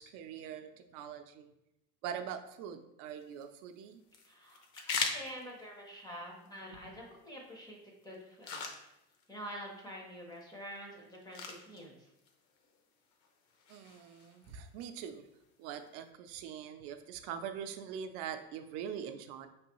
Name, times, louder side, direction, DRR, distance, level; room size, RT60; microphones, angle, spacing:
voice 1, 0.0-1.5 2.0-4.0 13.7-15.2 15.6-19.5, right 8 dB, 60° right, 8 dB, 0.5 m, -43 dB
sound 1, 3.1-16.1, left 5 dB, 60° left, 0.7 m, -45 dB
voice 2, 4.2-7.8 8.0-8.6 9.3-12.1, equal, 10° left, -1 dB, 0.5 m, -47 dB
5.3 x 3.3 x 2.9 m, 0.86 s
cardioid pair, 175°, 36 cm